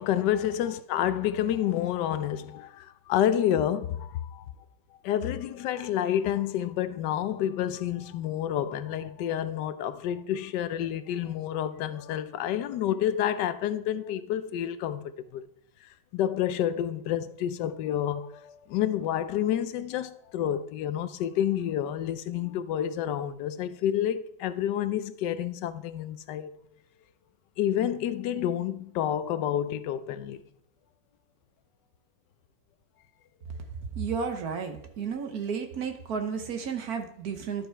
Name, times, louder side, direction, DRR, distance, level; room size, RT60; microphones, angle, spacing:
voice 1, 0.0-4.4 5.0-15.4 16.1-26.5 27.6-30.4, left 10 dB, 85° left, 1.3 m, -29 dB
voice 2, 33.8-37.7, right 6 dB, 65° right, 1.4 m, -32 dB
11.5 x 5.3 x 4.5 m
omnidirectional pair, 1.8 m